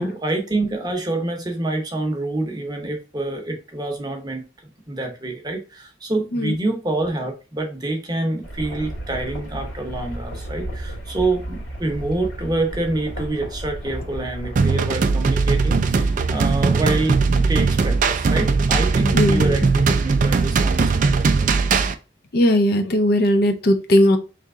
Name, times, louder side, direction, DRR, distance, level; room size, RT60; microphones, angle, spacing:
voice 1, 0.0-4.4 4.9-21.5, right 2 dB, 20° right, 3 dB, 0.7 m, -27 dB
sound 1, 8.4-14.8, right 1 dB, 90° left, 2.1 m, -33 dB
sound 2, 14.6-21.9, right 4 dB, 40° right, 0.3 m, -19 dB
voice 2, 19.1-19.5 22.3-24.2, left 1 dB, 50° left, 7 dB, 0.5 m, -18 dB
3.4 x 2.8 x 3.5 m, 0.33 s
head